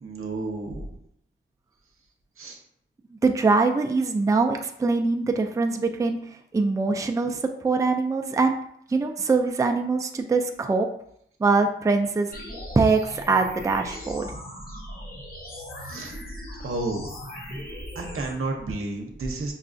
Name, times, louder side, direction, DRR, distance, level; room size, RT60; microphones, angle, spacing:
voice 1, 0.0-0.8 2.4-2.6 15.9-16.1 16.6-17.1 18.0-19.5, right 2 dB, 80° right, 2 dB, 0.7 m, -31 dB
voice 2, 3.2-8.6 8.9-10.9 11.4-12.3 12.7-14.3, right 3 dB, 15° right, 4 dB, 0.3 m, -23 dB
sound 1, 12.3-18.3, left 1 dB, 45° left, 1.0 m, -38 dB
5.5 x 2.3 x 2.5 m, 0.70 s
wide cardioid pair, 80°, 21 cm